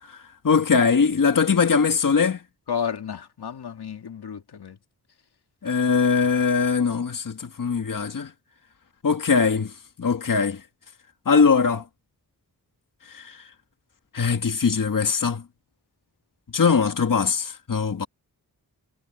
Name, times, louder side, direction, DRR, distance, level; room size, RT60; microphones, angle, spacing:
voice 1, 0.4-2.4 5.6-8.3 9.0-9.7 10.0-10.6 11.3-11.8 13.1-13.4 14.1-15.4 16.5-18.1, left 5 dB, 55° left, 1.8 m, -21 dB
voice 2, 2.7-4.8, left 7 dB, 90° left, 2.2 m, -32 dB
wide cardioid pair, 120°, 38 cm